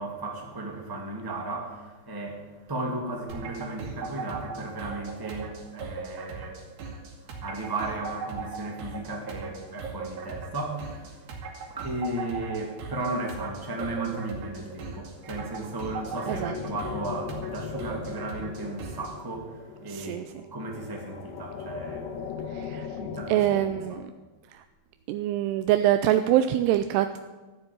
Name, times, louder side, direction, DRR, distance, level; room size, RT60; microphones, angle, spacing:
voice 1, 0.0-20.2 20.5-22.7 23.0-24.0, right 2 dB, 10° right, 1.1 m, -35 dB
sound 1, 3.3-19.2, right 4 dB, 65° right, 4.0 m, -39 dB
sound 2, 15.1-24.0, left 7 dB, 75° left, 2.5 m, -39 dB
voice 2, 19.9-20.3 22.5-22.9 23.3-24.1 24.5-24.6 25.1-27.2, right 12 dB, 90° right, 2.7 m, -24 dB
14.0 x 7.5 x 9.7 m
omnidirectional pair, 4.6 m